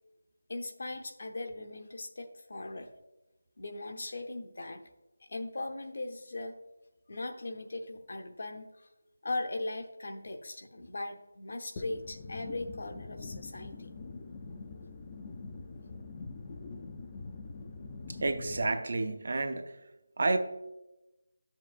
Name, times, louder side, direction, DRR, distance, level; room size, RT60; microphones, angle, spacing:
voice 1, 0.5-2.9 3.6-4.8 5.2-6.5 7.1-8.9 9.2-13.9, left 2 dB, 50° left, 5 dB, 0.7 m, -39 dB
sound 1, 11.8-18.7, left 3 dB, 20° left, 0.4 m, -44 dB
voice 2, 18.1-19.8 20.2-20.4, right 3 dB, 45° right, 8 dB, 0.5 m, -30 dB
9.6 x 7.4 x 2.5 m, 0.98 s
figure-of-eight pair, 175°, 0 cm